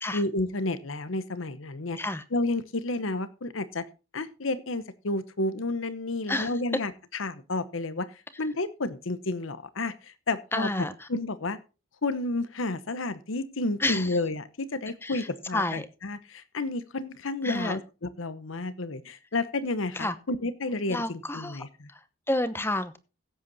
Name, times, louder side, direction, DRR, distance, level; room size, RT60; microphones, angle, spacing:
voice 1, 0.1-2.0 2.3-3.8 4.1-8.1 8.4-11.6 12.0-21.9, left 2 dB, 85° left, 14 dB, 1.0 m, -31 dB
voice 2, 10.5-11.1 13.8-14.2 14.9-15.9 17.4-17.8 19.9-20.1 20.9-21.6 21.9-23.0, left 1 dB, 10° left, 12 dB, 0.9 m, -30 dB
16.0 x 8.2 x 4.0 m, 0.32 s
head